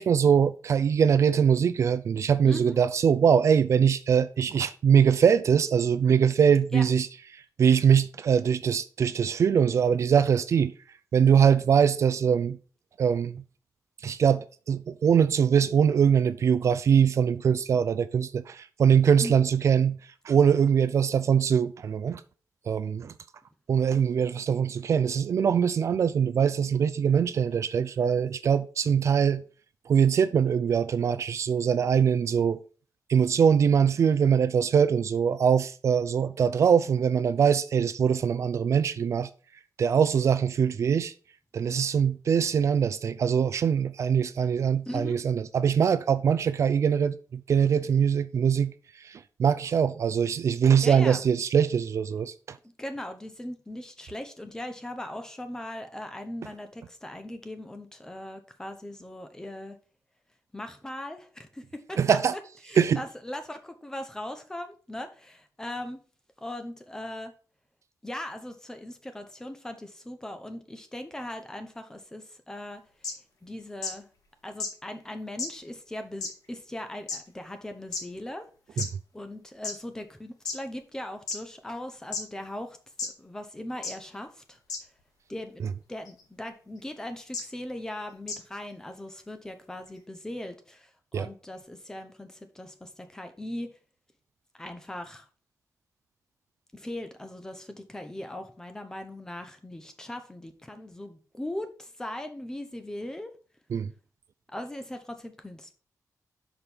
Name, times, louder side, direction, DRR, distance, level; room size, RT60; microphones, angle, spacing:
voice 1, 0.0-7.1 7.6-10.7 11.1-12.6 13.0-13.4 14.0-19.9 20.3-22.2 22.7-23.1 23.7-29.4 29.9-32.6 33.1-39.3 39.8-41.1 41.5-47.1 47.5-48.7 49.0-52.3 62.0-62.3 62.8-63.0 78.8-78.9 91.1-91.3 103.7-103.9, right 7 dB, 55° right, 0.4 m, -22 dB
voice 2, 2.4-2.8 6.7-6.9 19.2-19.4 44.9-45.2 50.8-51.2 52.8-59.8 60.5-62.2 62.6-66.0 66.4-67.3 68.0-72.8 73.4-74.1 74.4-78.4 78.7-78.8 79.1-84.6 85.3-93.7 94.6-95.3 96.7-103.3 104.5-105.7, left 1 dB, 10° left, 0.9 m, -39 dB
sound 1, 73.0-73.1 73.8-73.9 74.6-74.7 75.4-75.5 76.2-76.3 77.1-77.2 77.9-78.0 78.8-78.9 79.6-79.7 80.5-80.6 81.3-81.4 82.1-82.2 83.0-83.1 83.8-83.9 84.7-84.8 86.1-86.2 87.3-87.4 88.3-88.4, left 4 dB, 85° left, 1.9 m, -31 dB
6.2 x 5.1 x 5.5 m
wide cardioid pair, 175°, 6 cm